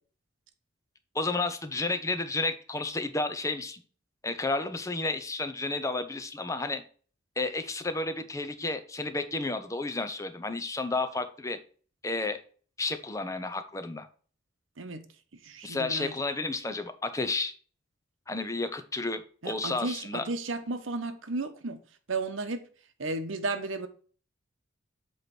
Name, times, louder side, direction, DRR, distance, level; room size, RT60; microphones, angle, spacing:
voice 1, 1.1-3.8 4.2-6.8 7.4-11.6 12.0-12.4 12.8-14.1 15.6-17.5 18.3-20.3, left 3 dB, 15° left, 0.6 m, -31 dB
voice 2, 15.4-16.1 19.4-21.8 22.1-22.7 23.0-23.9, right 3 dB, 90° right, 0.9 m, -33 dB
8.0 x 3.2 x 5.9 m
head